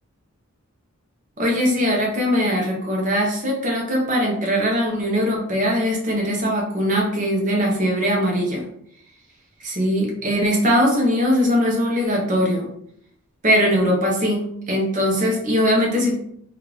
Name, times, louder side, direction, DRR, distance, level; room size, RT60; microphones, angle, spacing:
voice 1, 1.4-8.6 9.6-12.7 13.4-16.2, equal, 40° right, -1 dB, 0.9 m, -21 dB
3.5 x 2.4 x 3.0 m, 0.71 s
head